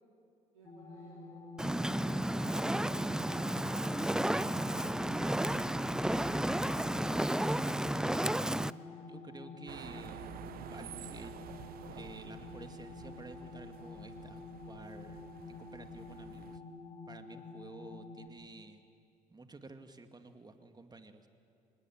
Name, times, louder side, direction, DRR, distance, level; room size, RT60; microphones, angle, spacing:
voice 1, 0.5-7.0, right 2 dB, 90° right, -6 dB, 3.6 m, -61 dB
sound 1, 0.6-18.3, left 3 dB, 35° left, 3.3 m, -48 dB
Fire, 1.6-8.7, right 1 dB, 5° right, 0.5 m, -32 dB
voice 2, 9.1-10.4 10.7-11.4 11.9-16.6 17.1-18.8 19.3-21.3, right 3 dB, 25° right, 7 dB, 2.2 m, -52 dB
sound 2, 9.7-16.6, right 12 dB, 60° right, 0.8 m, -50 dB
25.5 x 20.0 x 8.9 m, 2.6 s
hypercardioid pair, 55°, 18 cm